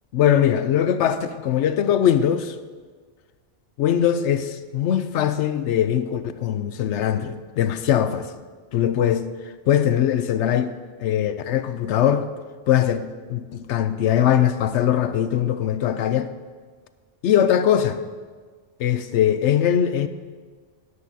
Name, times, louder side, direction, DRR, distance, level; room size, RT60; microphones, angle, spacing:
voice 1, 0.1-2.6 3.8-8.3 8.7-9.3 9.7-10.7 11.0-12.3 12.7-13.0 13.3-16.3 17.2-18.0 18.8-20.1, left 10 dB, 70° left, 0.8 m, -21 dB
13.5 x 11.0 x 2.8 m
omnidirectional pair, 1.3 m